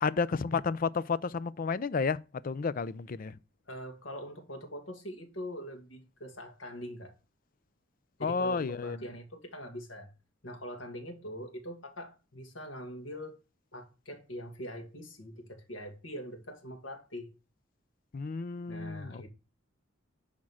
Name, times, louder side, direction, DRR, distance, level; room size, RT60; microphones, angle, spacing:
voice 1, 0.0-2.2 2.4-3.3 8.2-9.0 18.1-19.3, left 5 dB, 45° left, 0.4 m, -31 dB
voice 2, 3.7-7.1 8.2-10.1 10.4-13.4 13.7-17.3 18.7-19.3, equal, 85° left, 2.2 m, -43 dB
10.5 x 3.7 x 6.2 m
head